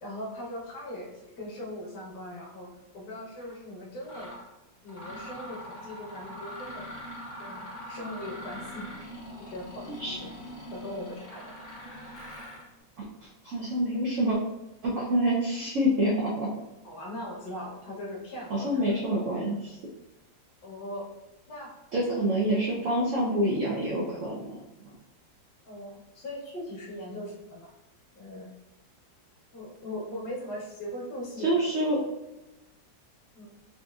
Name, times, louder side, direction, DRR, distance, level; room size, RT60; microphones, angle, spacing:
voice 1, 0.0-2.7 2.9-4.3 4.8-6.9 7.4-8.9 9.4-10.3 10.7-11.5 16.8-18.9 20.6-21.1 21.5-21.7 22.1-22.3 25.6-27.7 28.1-28.5 29.5-31.6 33.3-33.5, left 1 dB, 65° left, -4 dB, 1.3 m, -39 dB
Mechanisms, 3.4-3.5 4.0-4.4 4.9-12.7, equal, 45° left, 0.9 m, -42 dB
voice 2, 13.2-14.4 14.8-16.5 18.5-19.8 21.9-24.6 31.4-32.0, right 1 dB, 75° right, -4 dB, 0.7 m, -27 dB
4.1 x 2.5 x 2.3 m, 1.0 s
omnidirectional pair, 2.0 m